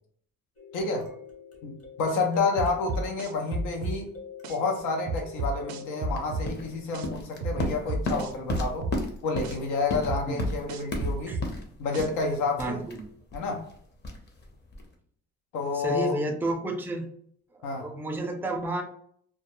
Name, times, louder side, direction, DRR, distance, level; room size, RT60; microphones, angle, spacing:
sound 1, 0.6-7.5 11.7-11.8 12.2-12.3, left 6 dB, 50° left, 1.0 m, -47 dB
voice 1, 0.7-1.1 1.6-4.1 4.5-8.9 9.2-11.4 11.8-12.8 13.3-13.6 15.5-16.2 17.6-17.9, left 3 dB, 90° left, 1 dB, 0.6 m, -29 dB
sound 2, 2.6-4.0 4.4-4.6 5.1-6.5 6.9-7.1 7.4-9.0 9.4-9.6 10.1-11.5 11.9-12.1, right 2 dB, 65° right, 0.4 m, -31 dB
sound 3, 6.1-14.9, left 2 dB, 35° left, 0.6 m, -35 dB
voice 2, 12.6-13.1 15.7-17.1 17.5-18.8, right 2 dB, 5° right, 4 dB, 0.3 m, -31 dB
2.2 x 2.0 x 2.9 m, 0.62 s
cardioid pair, 90°, 30 cm